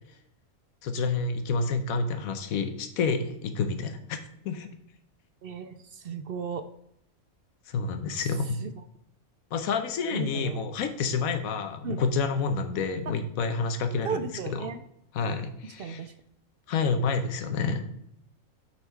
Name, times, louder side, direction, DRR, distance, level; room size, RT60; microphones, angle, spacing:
voice 1, 0.8-4.2 4.4-4.7 7.7-8.6 9.5-14.2 14.5-14.7 15.1-16.1 16.7-17.8, left 4 dB, 90° left, 8 dB, 1.2 m, -29 dB
voice 2, 5.4-6.6 8.6-8.7 10.1-10.6 11.8-12.0 14.0-14.8 15.8-16.1 17.6-17.7, right 5 dB, 65° right, 9 dB, 0.6 m, -35 dB
8.1 x 4.2 x 4.5 m, 0.75 s
omnidirectional pair, 1.4 m